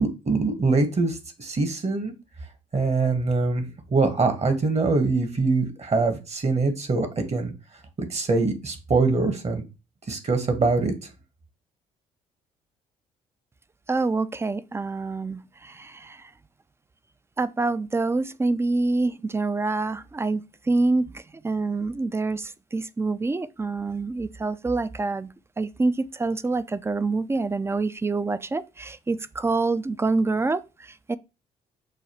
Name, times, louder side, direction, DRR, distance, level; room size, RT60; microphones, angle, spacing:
voice 1, 0.0-2.1 2.7-3.6 3.9-7.5 8.0-9.6 10.1-10.9, right 3 dB, 40° right, 1.2 m, -23 dB
voice 2, 13.9-16.2 17.4-25.3 25.6-31.2, right 3 dB, 15° right, 0.4 m, -26 dB
6.4 x 2.3 x 2.9 m
hypercardioid pair, 55°, 17 cm